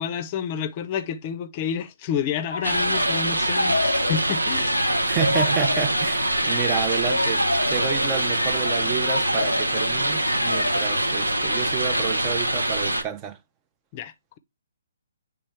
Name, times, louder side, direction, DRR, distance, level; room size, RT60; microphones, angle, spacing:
voice 1, 0.0-4.7 13.9-14.4, left 8 dB, 30° left, 0.5 m, -29 dB
sound 1, 2.5-12.1, left 2 dB, 90° left, 0.5 m, -29 dB
sound 2, 2.6-13.0, right 1 dB, 90° right, 0.9 m, -24 dB
voice 2, 5.1-13.4, right 8 dB, 20° right, 0.5 m, -30 dB
8.5 x 3.5 x 3.3 m
figure-of-eight pair, 135°, 0 cm